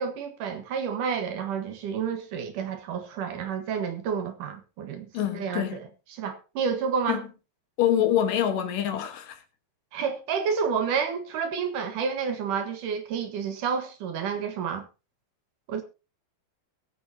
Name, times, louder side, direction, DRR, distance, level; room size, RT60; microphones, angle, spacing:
voice 1, 0.0-5.8 6.2-7.2 9.9-14.8 15.7-15.8, right 6 dB, 65° right, 2.8 m, -30 dB
voice 2, 5.1-5.8 7.1-7.3 7.8-9.4, left 10 dB, 70° left, 3.0 m, -25 dB
20.5 x 8.7 x 2.8 m
omnidirectional pair, 4.2 m